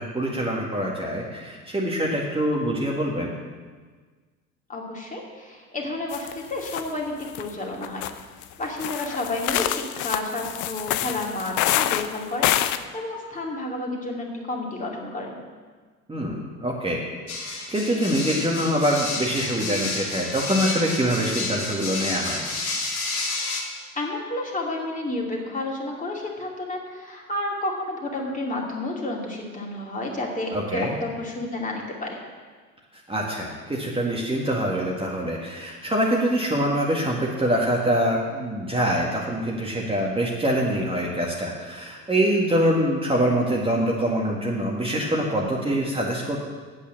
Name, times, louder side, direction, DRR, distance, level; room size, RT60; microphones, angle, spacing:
voice 1, 0.0-3.3 16.1-17.0 17.4-22.4 30.5-30.9 33.1-46.4, equal, 15° right, -3 dB, 1.8 m, -24 dB
voice 2, 4.7-8.0 8.6-15.4 23.7-32.1, left 2 dB, 20° left, -1 dB, 2.7 m, -31 dB
sound 1, 6.1-6.3 6.6-6.9 7.2-7.4 7.8-12.8, left 13 dB, 45° left, 0.6 m, -26 dB
sound 2, 17.3-23.6, left 3 dB, 85° left, 1.6 m, -30 dB
8.6 x 8.3 x 7.5 m, 1.5 s
figure-of-eight pair, 65°, 42 cm